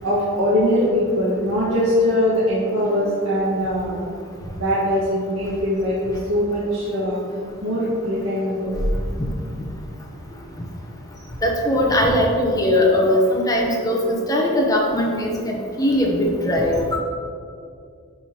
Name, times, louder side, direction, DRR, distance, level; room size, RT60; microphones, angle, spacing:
voice 1, 0.0-4.1 4.5-7.2 7.6-8.7, equal, 90° right, -9 dB, 1.5 m, -21 dB
voice 2, 11.4-14.0 14.3-17.0, left 1 dB, 15° left, -1 dB, 0.8 m, -20 dB
11.0 x 4.8 x 2.9 m, 2.3 s
head